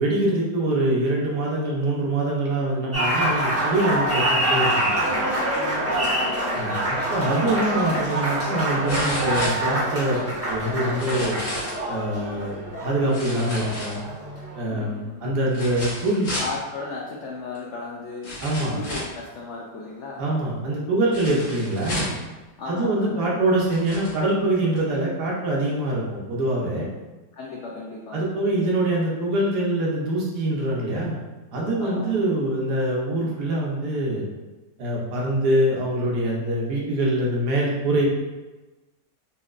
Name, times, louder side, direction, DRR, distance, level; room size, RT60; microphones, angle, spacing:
voice 1, 0.0-4.9 6.5-10.2 10.5-11.4 11.9-14.0 14.5-16.3 18.4-18.8 20.2-22.1 22.7-26.9 28.1-31.2 31.5-34.2 34.8-38.1, right 1 dB, 70° right, -4 dB, 1.4 m, -24 dB
Applause, 2.9-14.7, right 1 dB, 15° right, 0.5 m, -26 dB
voice 2, 5.9-6.8 14.7-15.3 16.4-18.3 18.6-20.2 22.6-23.2 27.3-28.3 31.8-32.2, left 3 dB, 90° left, -3 dB, 0.6 m, -35 dB
sound 1, 8.9-10.2 10.9-11.8 13.1-14.3 15.5-16.6 17.6-17.7 18.2-19.2 21.1-22.3 23.1-23.2 23.6-24.2 24.8-24.9, left 1 dB, 50° left, 1.7 m, -32 dB
4.2 x 2.8 x 2.4 m, 1.2 s
omnidirectional pair, 1.9 m